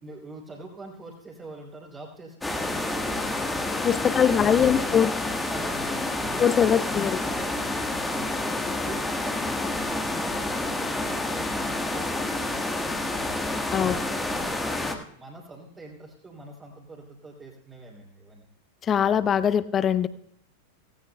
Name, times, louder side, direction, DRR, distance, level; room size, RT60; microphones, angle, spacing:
voice 1, 0.0-6.5 6.8-7.5 8.1-8.3 8.6-12.5 12.8-13.5 13.8-14.6 14.9-18.5, right 2 dB, 15° right, -4 dB, 2.9 m, -44 dB
sound 1, 2.4-14.9, left 2 dB, 10° left, 1.4 m, -29 dB
voice 2, 3.8-5.1 6.4-7.2 13.7-14.0 18.8-20.1, left 8 dB, 25° left, 16 dB, 0.6 m, -22 dB
17.5 x 16.5 x 2.2 m, 0.70 s
figure-of-eight pair, 90°, 0 cm